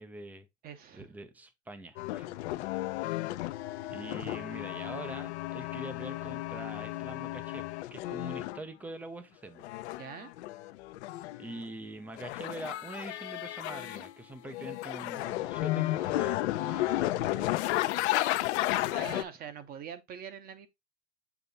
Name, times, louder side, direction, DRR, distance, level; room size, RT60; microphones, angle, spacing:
voice 1, 0.0-0.5 0.9-2.7 3.9-9.7 11.4-17.9, right 2 dB, 5° right, 0.5 m, -44 dB
voice 2, 0.6-1.1 10.0-10.3 18.9-20.7, right 7 dB, 25° right, 0.8 m, -43 dB
sound 1, 2.0-8.6 9.6-11.6 12.2-14.1 14.4-19.2, left 17 dB, 65° left, 0.6 m, -33 dB
7.0 x 3.3 x 4.0 m
supercardioid pair, 145°, 37 cm